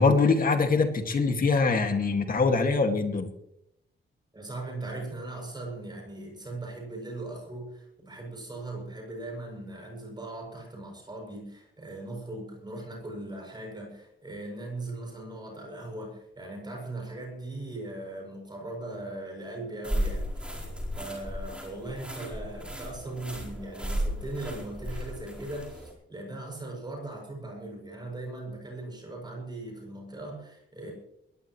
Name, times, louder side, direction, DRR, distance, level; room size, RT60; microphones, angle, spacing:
voice 1, 0.0-3.3, left 4 dB, 45° left, 5 dB, 2.2 m, -23 dB
voice 2, 4.3-20.6 21.0-30.9, right 2 dB, 20° right, 0 dB, 7.6 m, -39 dB
sound 1, 19.8-25.9, equal, 5° right, 4.6 m, -34 dB
21.5 x 17.0 x 3.2 m, 0.79 s
wide cardioid pair, 170°, 21 cm